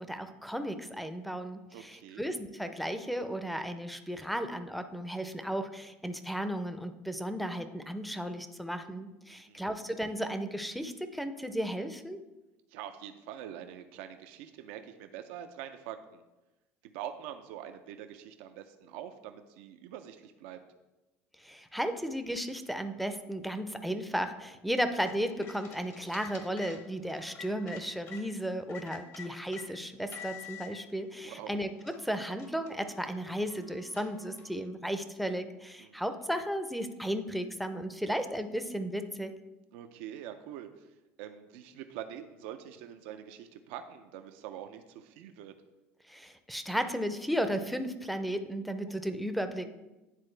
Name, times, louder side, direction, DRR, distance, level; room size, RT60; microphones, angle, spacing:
voice 1, 0.0-12.2 21.4-39.3 46.1-49.7, equal, ahead, 7 dB, 0.6 m, -34 dB
voice 2, 1.7-2.2 9.3-9.6 12.7-16.2 16.8-20.6 31.2-31.5 35.8-36.1 39.7-40.9 41.2-45.5, right 10 dB, 75° right, 7 dB, 0.5 m, -45 dB
sound 1, 24.8-28.2 28.7-29.7 30.1-30.7 31.4-31.5 31.8-34.6, left 7 dB, 45° left, 1.1 m, -49 dB
9.9 x 3.7 x 3.3 m, 1.0 s
supercardioid pair, 90°, 7 cm